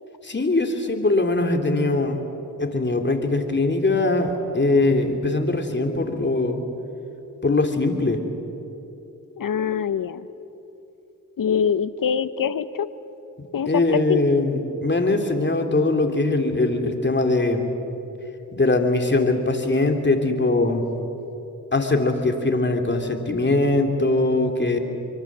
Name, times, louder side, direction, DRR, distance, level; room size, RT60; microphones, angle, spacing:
voice 1, 0.3-2.2 2.6-6.6 7.4-8.2 13.7-17.7 18.5-20.8 21.7-24.8, left 2 dB, 30° left, 4 dB, 3.1 m, -21 dB
voice 2, 9.4-10.3 11.4-12.9 13.5-14.2, left 7 dB, 70° left, 14 dB, 1.0 m, -24 dB
24.5 x 24.0 x 7.5 m, 2.9 s
cardioid pair, 60°, 35 cm